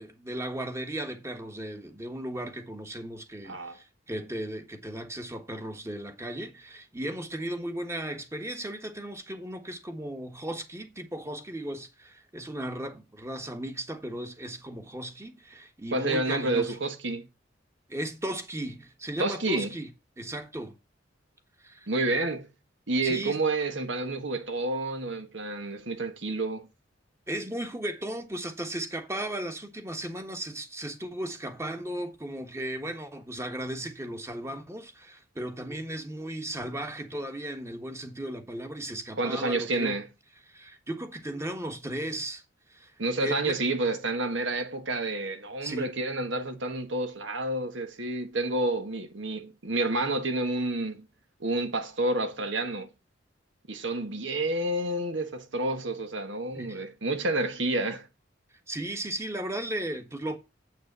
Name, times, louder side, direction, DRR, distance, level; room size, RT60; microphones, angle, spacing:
voice 1, 0.0-16.8 17.9-19.9 20.2-20.8 21.6-21.9 23.0-23.4 27.3-40.0 40.5-42.4 42.7-43.6 45.6-46.0 56.5-56.8 58.7-60.4, right 1 dB, 15° right, 1.5 m, -36 dB
voice 2, 3.4-3.8 15.9-17.3 19.2-19.7 21.9-22.5 22.9-26.7 39.2-40.1 43.0-51.0 51.4-52.9 53.7-58.1, right 2 dB, 70° right, 1.6 m, -29 dB
8.0 x 6.6 x 6.8 m
head